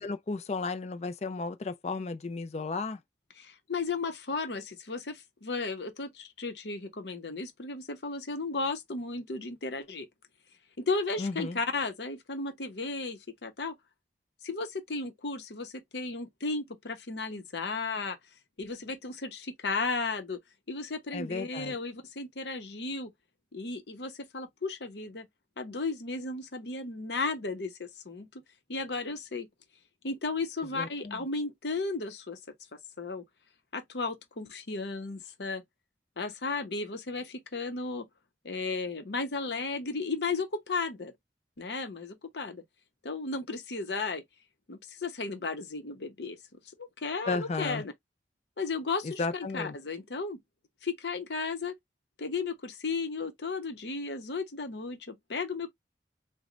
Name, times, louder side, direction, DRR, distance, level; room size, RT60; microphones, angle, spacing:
voice 1, 0.0-3.0 11.2-11.6 21.1-21.8 30.7-31.3 47.3-47.8 49.0-49.8, left 3 dB, 35° left, 0.4 m, -34 dB
voice 2, 3.4-10.1 10.8-13.8 14.4-18.2 18.6-20.4 20.7-23.1 23.5-25.3 25.6-28.3 28.7-29.5 30.0-32.4 33.0-33.2 33.7-35.6 36.2-38.1 38.4-41.1 41.6-42.6 43.0-44.2 44.7-46.4 46.8-47.9 48.6-50.4 50.8-51.7 52.2-55.7, left 3 dB, 70° left, 0.8 m, -34 dB
3.9 x 2.2 x 3.0 m
head